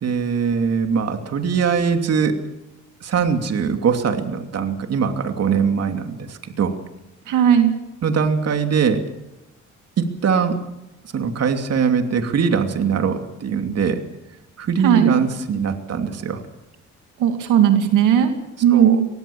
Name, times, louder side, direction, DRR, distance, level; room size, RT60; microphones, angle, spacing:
voice 1, 0.0-2.4 3.0-6.8 8.0-9.1 10.0-10.6 11.1-14.0 14.6-16.4 18.7-19.0, right 6 dB, 55° right, 6 dB, 2.8 m, -21 dB
voice 2, 7.3-7.7 14.8-15.2 17.2-18.3 18.6-19.1, right 9 dB, 90° right, 6 dB, 2.5 m, -16 dB
23.5 x 19.5 x 7.2 m, 0.95 s
cardioid pair, 90°, 30 cm